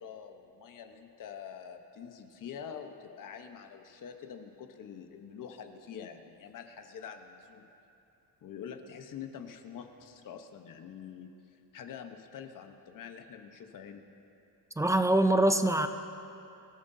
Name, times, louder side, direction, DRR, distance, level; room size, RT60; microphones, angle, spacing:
voice 1, 0.0-7.7 8.4-11.3 11.7-14.1, left 7 dB, 55° left, 5 dB, 1.0 m, -46 dB
voice 2, 14.8-15.9, right 1 dB, 10° right, 8 dB, 0.3 m, -24 dB
24.5 x 14.0 x 2.7 m, 2.8 s
cardioid pair, 155°, 39 cm